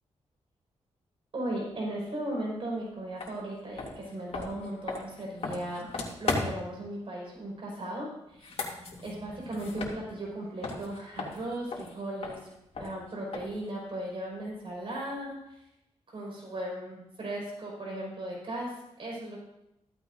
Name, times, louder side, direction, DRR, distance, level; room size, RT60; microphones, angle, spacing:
voice 1, 1.3-5.9 6.2-8.6 9.0-12.4 12.8-15.6 16.1-19.4, right 1 dB, 50° right, -3 dB, 5.1 m, -37 dB
sound 1, 3.2-3.3 3.7-6.8 8.3-10.4 10.6-13.7, left 3 dB, 60° left, 2.6 m, -37 dB
15.0 x 14.0 x 2.7 m, 0.85 s
wide cardioid pair, 105°, 12 cm